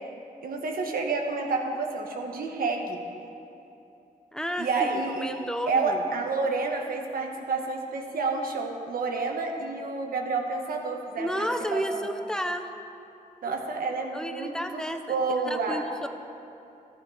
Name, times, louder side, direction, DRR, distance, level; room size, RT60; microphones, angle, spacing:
voice 1, 0.4-3.0 4.6-12.1 13.4-14.8 15.1-15.8, right 3 dB, 85° right, 2 dB, 1.5 m, -29 dB
voice 2, 4.3-6.1 11.2-12.7 13.5-13.6 14.1-15.1 15.5-16.1, equal, 5° left, 7 dB, 0.8 m, -32 dB
14.0 x 10.5 x 5.0 m, 2.8 s
wide cardioid pair, 120°, 15 cm